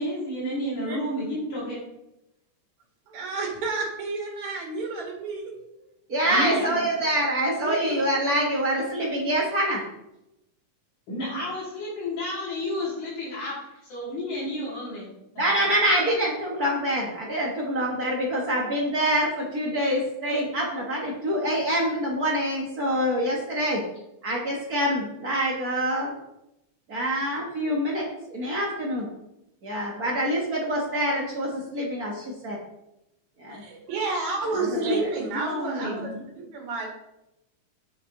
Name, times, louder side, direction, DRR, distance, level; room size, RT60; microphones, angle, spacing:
voice 1, 0.0-1.8 6.3-6.8 11.1-13.5 13.9-15.1 34.4-36.2, left 1 dB, 70° left, -9 dB, 4.2 m, -31 dB
voice 2, 3.1-5.5 7.5-7.8 33.5-36.1 36.4-36.9, right 3 dB, 65° right, -1 dB, 3.4 m, -30 dB
voice 3, 6.1-9.8 15.4-23.8 24.2-26.1 26.9-29.1 29.6-32.6 33.4-33.6 34.5-35.1, equal, 45° right, -2 dB, 1.2 m, -26 dB
8.5 x 6.6 x 3.8 m, 0.86 s
omnidirectional pair, 3.6 m